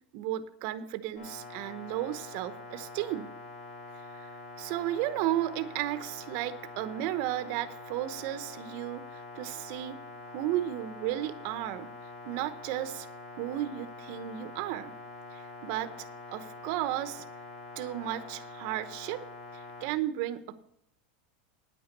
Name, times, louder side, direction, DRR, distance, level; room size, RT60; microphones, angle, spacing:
voice 1, 0.1-3.3 4.1-10.0 10.3-11.9 12.3-13.1 13.4-14.9 15.3-17.2 17.8-19.2 19.5-20.6, right 13 dB, 50° right, 11 dB, 0.9 m, -34 dB
sound 1, 1.2-19.9, left 3 dB, 50° left, 5.4 m, -45 dB
9.8 x 9.1 x 6.6 m, 0.74 s
supercardioid pair, 145°, 5 cm